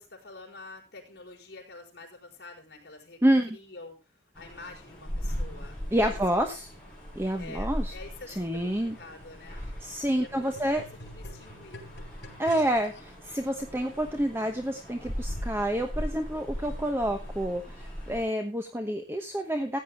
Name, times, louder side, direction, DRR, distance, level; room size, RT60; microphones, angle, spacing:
voice 1, 0.0-3.2 3.5-6.6 7.4-9.8 10.2-11.9, left 3 dB, 60° left, 0 dB, 4.8 m, -48 dB
voice 2, 3.2-3.6 5.9-6.7 7.2-7.9 8.3-9.0 9.8-10.8 12.4-19.8, right 1 dB, 15° right, 5 dB, 1.0 m, -28 dB
sound 1, 4.4-18.3, equal, 5° left, 7.6 m, -39 dB
sound 2, 8.6-13.0 13.8-13.9, left 1 dB, 75° left, 4.4 m, -48 dB
15.0 x 9.8 x 3.5 m, 0.27 s
head